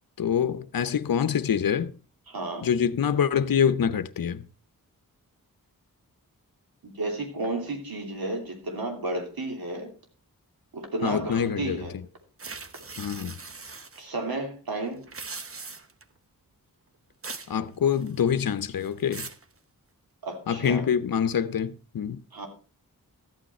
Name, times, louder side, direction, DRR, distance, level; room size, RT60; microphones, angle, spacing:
voice 1, 0.2-1.9 2.6-4.4 11.0-12.0 13.0-13.3 17.5-19.3 20.5-22.2, left 8 dB, 70° left, 0.8 m, -25 dB
voice 2, 2.3-2.7 6.8-9.9 10.7-11.9 14.0-15.1 20.2-20.8 22.3-22.5, right 2 dB, 85° right, 3.0 m, -32 dB
sound 1, 12.4-14.0 15.0-16.0 17.2-17.5 17.9-18.4 18.8-19.4, right 4 dB, 40° right, 1.0 m, -40 dB
13.0 x 8.9 x 4.3 m
wide cardioid pair, 70°, 35 cm